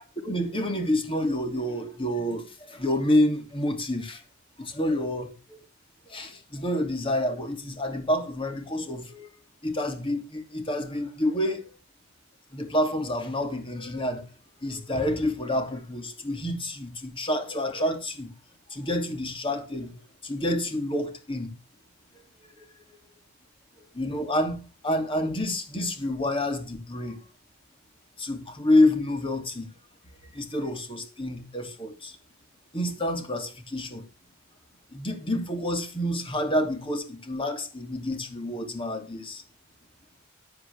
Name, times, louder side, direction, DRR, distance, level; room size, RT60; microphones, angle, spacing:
voice 1, 0.2-4.2 4.6-5.6 6.1-9.3 9.6-11.7 12.5-14.2 14.6-18.3 18.7-21.5 22.6-22.7 23.9-27.2 28.2-29.7 30.3-32.2 32.7-34.0 34.9-39.4, left 1 dB, 25° left, 2.9 m, -28 dB
14.5 x 9.6 x 3.6 m
head